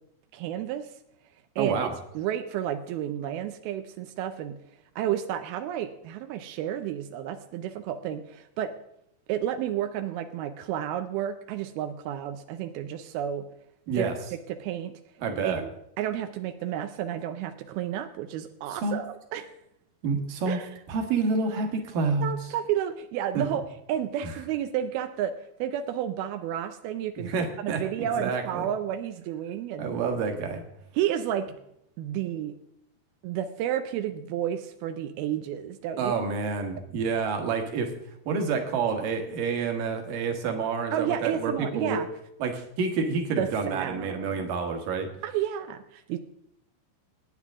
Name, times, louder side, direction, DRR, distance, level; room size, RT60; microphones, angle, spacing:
voice 1, 0.3-0.9 1.6-1.9 2.2-4.6 5.0-8.7 9.3-13.4 14.0-14.1 14.5-14.9 15.4-15.7 16.0-19.5 20.5-20.8 22.2-23.6 23.9-25.3 25.6-27.3 27.6-29.9 30.9-31.5 32.0-32.5 33.2-36.1 40.9-42.1 43.4-44.4 45.2-46.2, right 10 dB, 85° right, 8 dB, 2.2 m, -31 dB
voice 2, 1.6-1.9 13.9-14.1 15.2-15.6 18.7-19.0 20.0-20.6 20.9-22.3 23.3-23.4 24.2-24.3 27.2-28.7 29.8-30.6 36.0-37.9 38.3-42.0 42.4-45.1, right 4 dB, 60° right, 4 dB, 2.8 m, -28 dB
24.5 x 9.4 x 3.7 m, 0.77 s
omnidirectional pair, 5.3 m